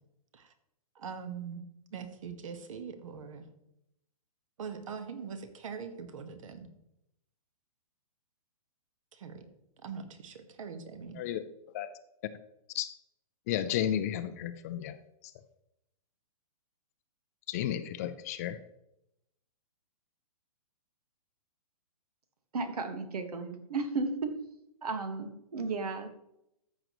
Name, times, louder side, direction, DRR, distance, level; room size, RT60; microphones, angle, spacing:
voice 1, 0.9-1.6 1.9-3.4 4.6-6.7 9.1-9.4 9.8-11.2, right 6 dB, 60° right, 1.5 m, -42 dB
voice 2, 13.5-15.0 17.5-18.6, left 11 dB, 25° left, 0.4 m, -32 dB
voice 3, 22.5-24.3 24.8-26.2, right 3 dB, 85° right, 1.6 m, -34 dB
14.0 x 6.4 x 3.1 m
hypercardioid pair, 160°, 19 cm